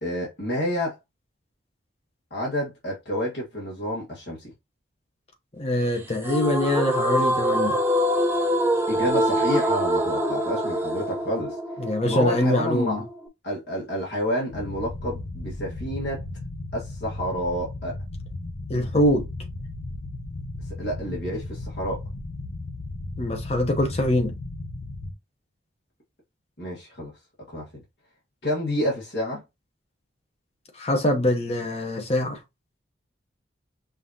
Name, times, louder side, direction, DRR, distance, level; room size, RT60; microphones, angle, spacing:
voice 1, 0.0-0.9 2.3-4.5 8.9-11.6 12.1-13.0 13.4-16.2 16.7-18.0 20.8-22.0 26.6-27.1 27.5-27.8 28.4-29.4, equal, 65° left, 1.7 m, -29 dB
voice 2, 5.6-7.8 11.8-13.0 18.7-19.3 23.2-24.3 30.8-32.4, left 1 dB, 35° left, 1.0 m, -23 dB
sound 1, 6.2-13.3, equal, 10° right, 0.6 m, -25 dB
sound 2, 14.5-25.1, left 2 dB, 80° left, 0.9 m, -35 dB
5.6 x 2.7 x 2.8 m
head